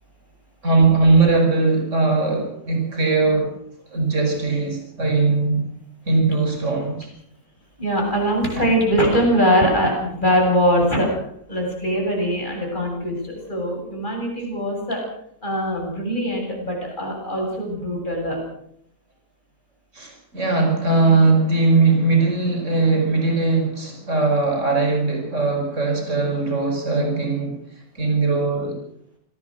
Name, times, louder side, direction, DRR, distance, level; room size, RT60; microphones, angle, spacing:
voice 1, 0.6-3.5 3.9-5.7 6.1-7.1 8.6-8.7 19.9-27.6 28.0-28.8, right 3 dB, 55° right, 3 dB, 5.4 m, -19 dB
voice 2, 7.8-11.1 11.5-15.0 15.4-18.4, equal, 30° left, 0 dB, 8.4 m, -22 dB
25.5 x 18.5 x 6.6 m, 0.72 s
omnidirectional pair, 1.5 m